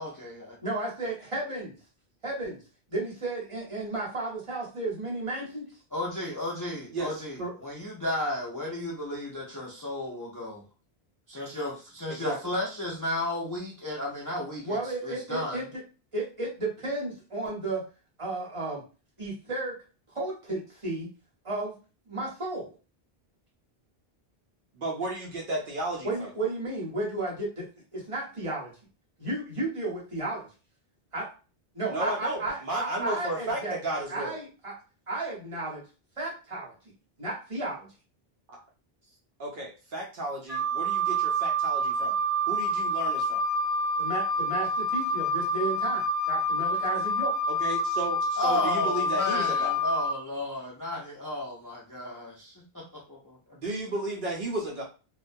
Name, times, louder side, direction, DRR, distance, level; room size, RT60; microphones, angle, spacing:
voice 1, 0.0-0.6 5.9-10.6 11.3-15.6 48.4-53.6, left 1 dB, 25° left, -3 dB, 0.4 m, -33 dB
voice 2, 0.6-1.8 2.2-2.6 2.9-5.7 14.6-15.6 16.1-17.8 18.2-18.8 19.2-19.8 20.1-21.1 21.4-21.8 22.1-22.7 26.0-27.7 27.9-28.7 29.2-30.5 31.1-31.3 31.7-33.8 34.1-34.8 35.1-35.8 36.2-36.7 37.2-37.9 44.0-47.3, right 2 dB, 30° right, -4 dB, 1.0 m, -33 dB
voice 3, 6.9-7.5 12.1-12.4 24.8-26.3 31.9-34.4 38.5-38.6 39.4-42.2 42.5-43.4 47.5-49.8 53.5-54.8, right 2 dB, 60° right, -1 dB, 0.7 m, -33 dB
Wind instrument woodwind instrument, 40.5-50.1, equal, ahead, 0.7 m, -27 dB
2.3 x 2.2 x 2.6 m, 0.34 s
omnidirectional pair, 1.0 m